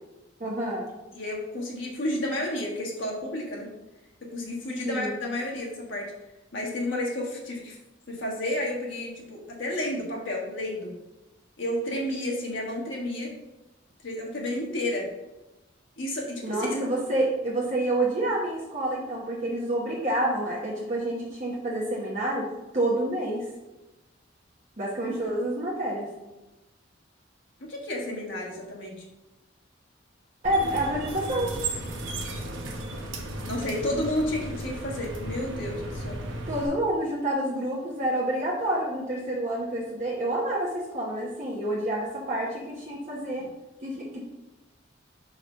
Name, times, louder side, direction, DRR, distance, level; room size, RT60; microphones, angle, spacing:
voice 1, 0.4-0.9 4.8-5.2 16.4-22.5 22.7-23.5 24.8-26.1 30.4-31.5 36.5-43.5 43.8-44.2, right 1 dB, 40° right, -5 dB, 0.9 m, -28 dB
voice 2, 1.1-3.7 4.3-6.1 6.5-7.8 8.1-10.9 11.6-13.3 14.0-15.1 16.0-16.9 25.1-25.2 27.6-29.0 33.5-36.2, left 1 dB, 70° left, -3 dB, 1.5 m, -31 dB
sound 1, 30.4-36.7, right 2 dB, 85° right, 0.9 m, -35 dB
4.3 x 3.9 x 5.5 m, 1.0 s
head